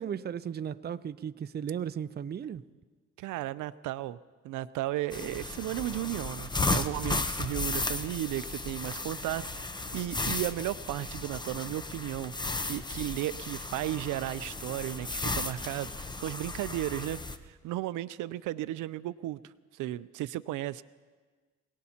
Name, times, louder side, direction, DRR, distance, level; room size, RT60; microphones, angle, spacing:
voice 1, 0.0-2.6, right 8 dB, 35° right, 13 dB, 0.5 m, -35 dB
voice 2, 3.2-4.2 4.4-12.3 12.6-19.4 19.7-20.8, right 14 dB, 85° right, 16 dB, 0.5 m, -34 dB
sound 1, 5.1-17.4, left 2 dB, 15° left, 0.8 m, -35 dB
26.5 x 18.5 x 2.9 m, 1.4 s
cardioid pair, 90°, 30 cm